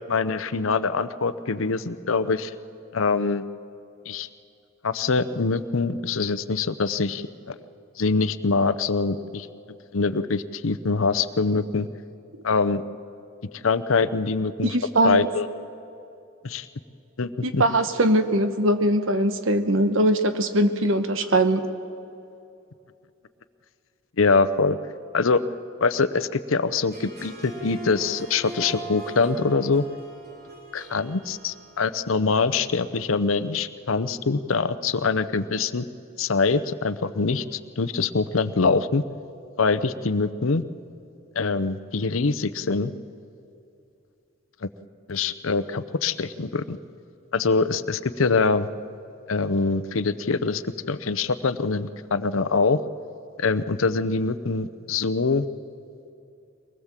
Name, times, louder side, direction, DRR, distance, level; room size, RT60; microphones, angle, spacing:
voice 1, 0.1-2.5 2.9-3.4 4.1-4.3 4.8-7.5 8.0-9.5 9.9-11.9 12.4-12.8 13.6-14.8 15.0-15.5 16.4-16.7 17.2-17.6 24.2-24.8 25.1-25.4 25.8-29.8 30.7-35.8 36.2-39.0 39.6-40.6 41.3-42.9 44.6-44.7 45.1-46.8 47.3-48.7 49.3-52.8 53.4-55.5, left 4 dB, 75° left, 14 dB, 0.7 m, -24 dB
voice 2, 14.6-15.3 17.4-21.7, right 1 dB, 70° right, 9 dB, 1.2 m, -21 dB
Harp, 26.8-32.2, right 2 dB, 45° right, 3.0 m, -40 dB
23.0 x 19.5 x 7.4 m, 2.6 s
head